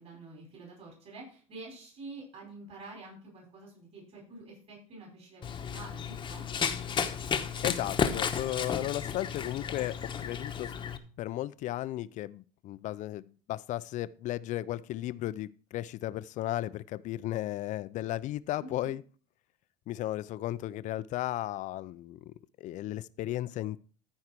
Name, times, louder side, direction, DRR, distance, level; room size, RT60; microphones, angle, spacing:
voice 1, 0.0-6.4 18.6-18.9, right 2 dB, 40° right, -1 dB, 5.4 m, -48 dB
Run, 5.4-11.0, left 7 dB, 30° left, 1.1 m, -33 dB
voice 2, 7.6-10.7 11.2-19.0 19.9-23.8, left 14 dB, 45° left, 17 dB, 0.5 m, -35 dB
14.0 x 4.8 x 4.6 m, 0.41 s
supercardioid pair, 100°, 17 cm